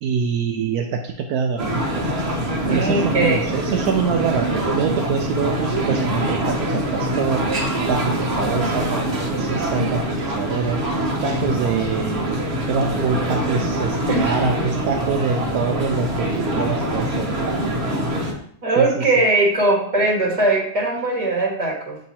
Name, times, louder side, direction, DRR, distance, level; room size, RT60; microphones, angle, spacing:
voice 1, 0.0-2.0 2.7-7.5 7.9-10.8 11.2-12.4 12.7-17.6 18.8-19.0, right 6 dB, 75° right, 3 dB, 1.1 m, -25 dB
sound 1, 1.6-18.3, right 1 dB, 45° right, 1.2 m, -24 dB
voice 2, 2.7-3.4 14.1-14.4 18.6-22.0, right 2 dB, 25° right, -2 dB, 1.5 m, -20 dB
7.7 x 3.0 x 4.2 m, 0.64 s
omnidirectional pair, 1.7 m